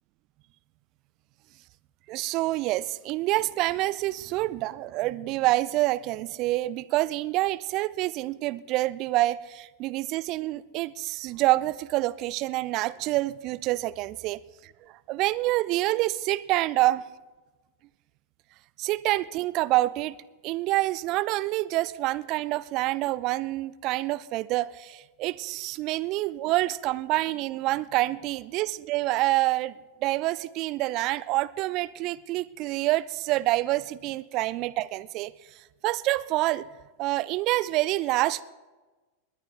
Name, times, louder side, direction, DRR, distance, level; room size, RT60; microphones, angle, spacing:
voice 1, 2.1-17.0 18.8-20.1 20.4-29.7 30.0-35.3 35.8-36.7 37.0-38.4, right 18 dB, 40° right, 19 dB, 0.4 m, -27 dB
21.0 x 20.0 x 2.2 m, 1.2 s
figure-of-eight pair, 90°, 0 cm